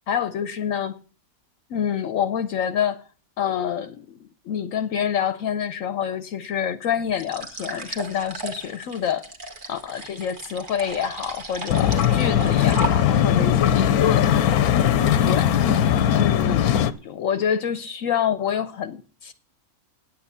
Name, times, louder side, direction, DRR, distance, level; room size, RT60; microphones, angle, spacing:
voice 1, 0.1-1.0 1.7-3.0 3.4-9.3 9.7-14.3 15.2-15.5 16.1-19.3, left 8 dB, 65° left, 1.1 m, -27 dB
sound 1, 7.1-13.4, right 3 dB, 35° right, 1.5 m, -35 dB
sound 2, 11.7-16.9, left 9 dB, 90° left, 1.2 m, -19 dB
9.3 x 8.5 x 6.8 m
omnidirectional pair, 1.6 m